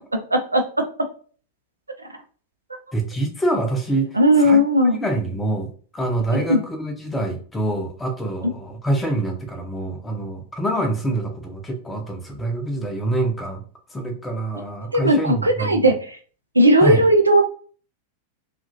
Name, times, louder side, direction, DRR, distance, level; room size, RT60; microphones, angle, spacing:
voice 1, 0.3-0.6 4.1-5.0 6.3-6.6 14.9-16.0 16.6-17.4, equal, 80° right, 5 dB, 0.4 m, -16 dB
voice 2, 2.9-4.6 4.8-13.6 13.9-15.9 16.8-17.0, right 1 dB, 10° left, 3 dB, 0.7 m, -25 dB
2.8 x 2.4 x 2.6 m, 0.42 s
figure-of-eight pair, 90°, 0 cm